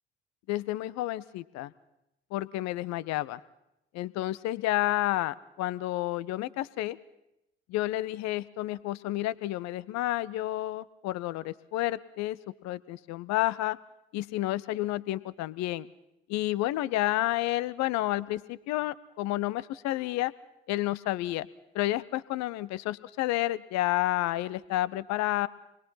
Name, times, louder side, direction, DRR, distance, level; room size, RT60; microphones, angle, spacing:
voice 1, 0.5-1.7 2.3-3.4 3.9-7.0 7.7-13.8 14.1-15.9 16.3-20.3 20.7-21.5 21.7-25.5, left 16 dB, 60° left, 18 dB, 0.7 m, -30 dB
26.0 x 21.0 x 5.7 m, 0.90 s
figure-of-eight pair, 40°, 31 cm